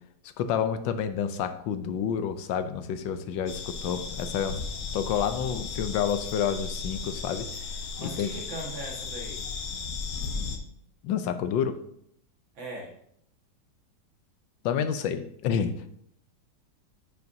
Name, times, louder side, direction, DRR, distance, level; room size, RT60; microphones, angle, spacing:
voice 1, 0.4-4.6 4.9-7.5 8.0-8.3 9.7-9.8 11.0-11.8 14.6-15.9, left 8 dB, 80° left, 10 dB, 1.4 m, -29 dB
sound 1, 3.5-10.6, left 4 dB, 55° left, 1.0 m, -35 dB
voice 2, 8.0-9.5 12.6-12.9, right 1 dB, 85° right, -1 dB, 2.4 m, -39 dB
10.5 x 5.4 x 2.7 m, 0.71 s
omnidirectional pair, 2.0 m